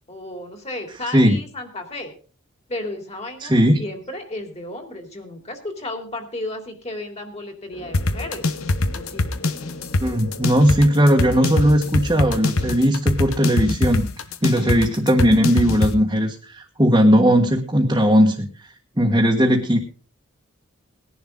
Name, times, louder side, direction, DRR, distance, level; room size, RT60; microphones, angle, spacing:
voice 1, 0.1-2.1 2.7-8.5 8.9-9.4, left 2 dB, 30° left, 6 dB, 3.1 m, -33 dB
voice 2, 3.4-3.8 10.0-14.1 14.4-18.5 19.0-19.8, equal, 20° right, 0 dB, 1.5 m, -17 dB
sound 1, 7.7-12.8, left 2 dB, 60° left, 5.2 m, -40 dB
sound 2, 7.9-15.9, left 2 dB, 80° left, 1.1 m, -23 dB
19.5 x 11.0 x 3.8 m, 0.38 s
head